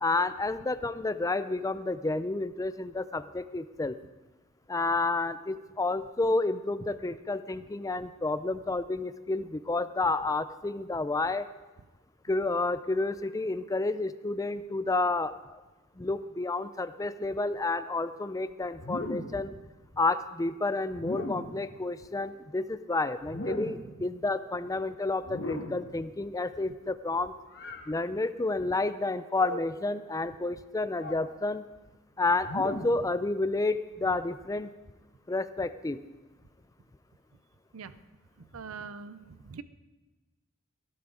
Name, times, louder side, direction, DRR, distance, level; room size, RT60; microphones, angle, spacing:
voice 1, 0.0-4.0 4.7-11.5 12.3-15.6 16.0-19.5 19.9-27.3 27.9-31.6 32.2-34.7 35.3-36.0, left 3 dB, 15° left, 13 dB, 0.5 m, -30 dB
sound 1, 18.8-19.5 20.9-21.6 23.2-24.0 25.2-25.9 27.5-27.9 29.3-29.8 30.9-31.3 32.4-33.1, left 1 dB, 55° left, 1.4 m, -38 dB
voice 2, 38.4-39.6, right 5 dB, 75° right, 14 dB, 0.6 m, -43 dB
18.0 x 12.0 x 3.8 m, 1.2 s
head